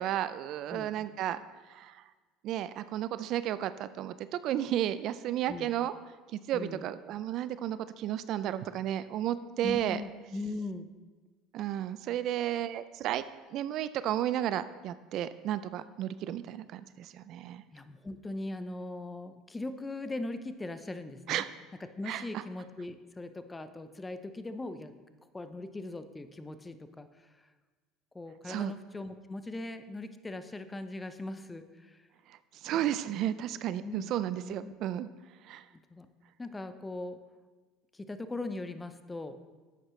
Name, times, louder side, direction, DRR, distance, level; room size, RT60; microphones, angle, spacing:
voice 1, 0.0-1.4 1.7-1.9 2.4-5.9 6.5-10.0 11.5-13.2 13.5-17.6 21.3-21.5 22.1-22.2 28.5-28.7 32.6-35.1 35.5-35.6, right 11 dB, 60° right, 14 dB, 0.4 m, -33 dB
voice 2, 6.5-6.8 9.6-10.9 17.7-21.4 21.8-24.9 25.3-27.3 28.1-32.1 33.8-34.1 34.4-34.7 35.9-36.1 36.4-37.2 37.9-39.4, left 2 dB, 15° left, 10 dB, 0.7 m, -40 dB
11.0 x 8.8 x 3.2 m, 1.3 s
supercardioid pair, 90°, 0 cm